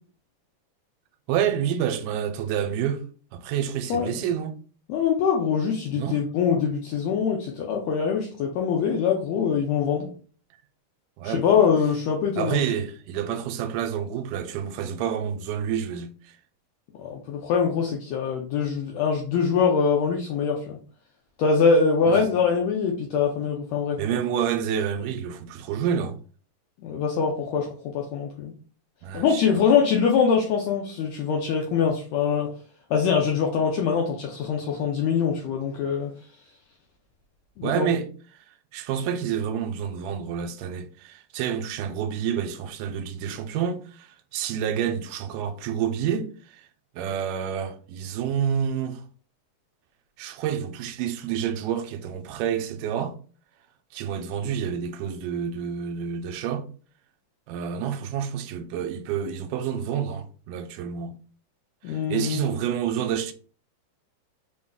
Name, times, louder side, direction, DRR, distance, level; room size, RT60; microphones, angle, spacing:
voice 1, 1.3-3.0 3.3-4.6 5.9-6.2 11.2-11.5 12.4-16.4 22.1-22.2 24.0-26.2 29.0-29.7 37.6-38.1 38.4-46.7 46.9-49.0 50.2-53.2 53.9-56.7 57.5-61.2 61.9-63.3, right 8 dB, 85° right, 2.1 m, -28 dB
voice 2, 4.9-10.1 11.2-12.6 17.0-20.8 21.4-24.0 26.8-28.5 29.1-32.5 32.9-36.1 37.6-37.9 61.8-62.5, left 6 dB, 85° left, 1.6 m, -23 dB
5.2 x 2.3 x 3.6 m
omnidirectional pair, 3.7 m